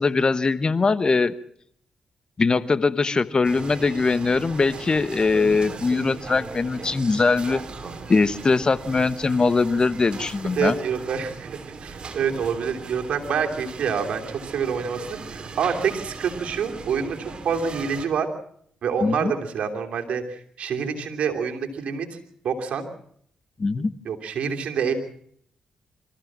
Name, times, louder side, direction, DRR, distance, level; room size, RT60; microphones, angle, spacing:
voice 1, 0.0-1.3 2.4-7.6 8.1-10.8 19.0-19.3 23.6-23.9, left 4 dB, 40° left, 16 dB, 1.1 m, -21 dB
sound 1, 3.4-18.1, right 4 dB, 45° right, 2.9 m, -38 dB
voice 2, 10.6-18.3 18.8-22.2 22.4-22.9 24.0-24.9, right 6 dB, 70° right, 3 dB, 3.0 m, -27 dB
25.0 x 14.5 x 7.4 m, 0.65 s
supercardioid pair, 60°, 2 cm